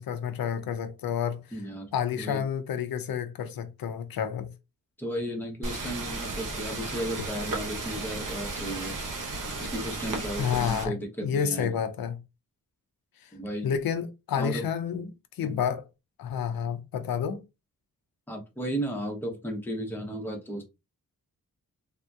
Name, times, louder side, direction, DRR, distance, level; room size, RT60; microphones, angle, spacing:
voice 1, 0.0-1.4 1.9-4.5 10.4-10.9 11.2-12.2 13.2-13.3 13.6-15.8 16.2-17.4, left 8 dB, 80° left, 0.5 m, -30 dB
voice 2, 1.5-1.9 2.2-2.4 5.0-9.0 9.7-11.8 13.3-13.7 14.4-14.6 15.4-15.6 18.3-20.6, right 1 dB, 5° left, 0.7 m, -34 dB
sound 1, 5.6-10.9, right 3 dB, 60° right, 0.9 m, -34 dB
3.5 x 2.8 x 2.3 m
wide cardioid pair, 180°, 35 cm